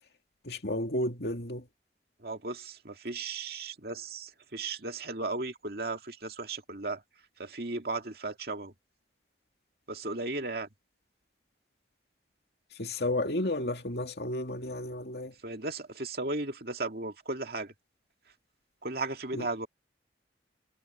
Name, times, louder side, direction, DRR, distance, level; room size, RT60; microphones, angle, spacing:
voice 1, 0.4-1.7 12.7-15.3 19.3-19.5, left 1 dB, 65° left, 2.6 m, -32 dB
voice 2, 2.2-7.0 7.4-8.7 9.9-10.7 15.4-17.7 18.8-19.7, right 3 dB, 60° right, 2.3 m, -35 dB
head